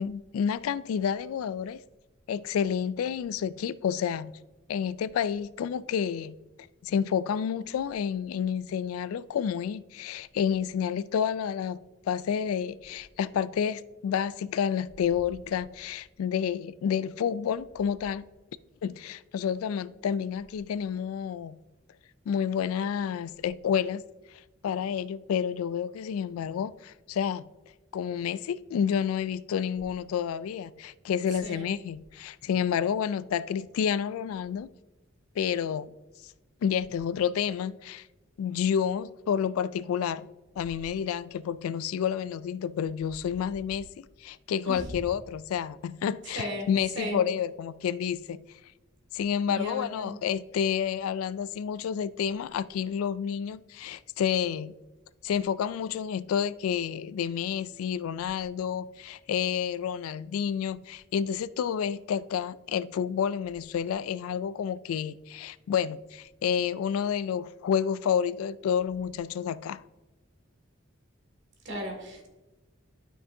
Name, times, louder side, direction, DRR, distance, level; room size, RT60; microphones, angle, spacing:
voice 1, 0.0-1.8 2.3-4.4 4.7-6.4 6.8-11.8 12.1-18.2 18.8-21.6 22.3-24.0 24.3-27.4 27.9-34.7 35.4-35.9 36.6-38.1 38.4-40.3 40.6-48.4 49.1-54.7 55.2-69.8, left 8 dB, 90° left, 0.3 m, -29 dB
voice 2, 31.3-31.7 44.6-44.9 46.2-46.7 46.9-47.2 49.5-50.2 71.6-72.3, equal, 55° right, 2.0 m, -36 dB
11.5 x 6.0 x 2.7 m
head